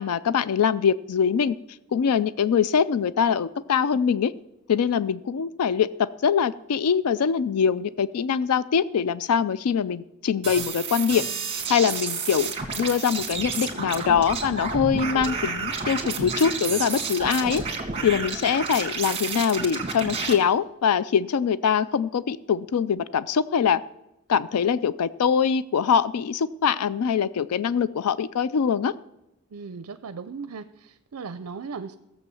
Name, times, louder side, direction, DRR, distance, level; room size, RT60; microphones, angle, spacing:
voice 1, 0.0-1.6 1.9-4.3 4.7-5.9 6.2-11.2 11.7-12.5 12.8-17.6 18.0-23.8 24.3-28.9, left 7 dB, 75° left, 17 dB, 0.4 m, -23 dB
sound 1, 10.4-20.3, right 4 dB, 25° right, 2.0 m, -30 dB
voice 2, 29.5-32.0, right 5 dB, 65° right, 12 dB, 0.5 m, -37 dB
16.0 x 7.3 x 6.9 m, 0.90 s
head